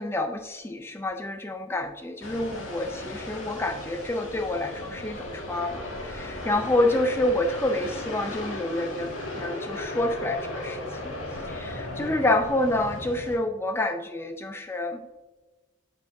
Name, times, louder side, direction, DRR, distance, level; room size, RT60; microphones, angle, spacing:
voice 1, 0.0-15.0, left 1 dB, 10° left, 6 dB, 0.3 m, -28 dB
sound 1, 2.2-13.4, left 1 dB, 70° left, 1.8 m, -36 dB
9.1 x 5.7 x 2.6 m, 1.2 s
head